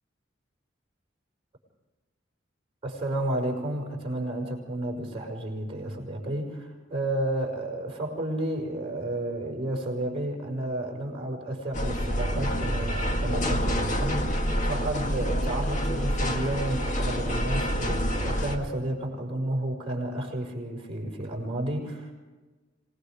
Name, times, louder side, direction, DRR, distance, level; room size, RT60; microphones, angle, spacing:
voice 1, 2.8-22.1, right 1 dB, 30° right, -1 dB, 5.6 m, -31 dB
sound 1, 11.7-18.6, equal, 40° left, 2.0 m, -27 dB
26.5 x 19.0 x 5.2 m, 1.2 s
head